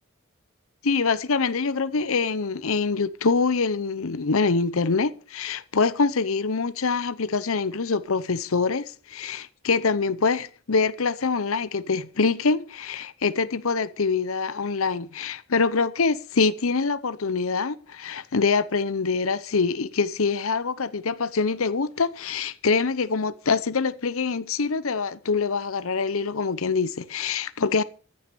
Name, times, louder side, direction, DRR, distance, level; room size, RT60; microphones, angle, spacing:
voice 1, 0.8-27.8, left 4 dB, 70° left, 0.8 m, -25 dB
14.0 x 9.3 x 6.9 m
head